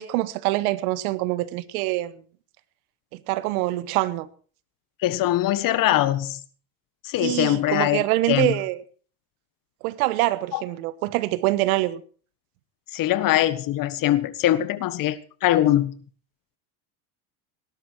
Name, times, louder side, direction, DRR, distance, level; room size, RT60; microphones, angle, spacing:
voice 1, 0.0-2.1 3.1-4.3 7.2-8.8 9.8-12.0, right 18 dB, 70° right, 1.4 m, -25 dB
voice 2, 5.0-6.4 7.0-8.6 10.5-10.6 12.9-16.0, left 13 dB, 50° left, 1.6 m, -22 dB
18.5 x 12.0 x 4.7 m
supercardioid pair, 95°, 44 cm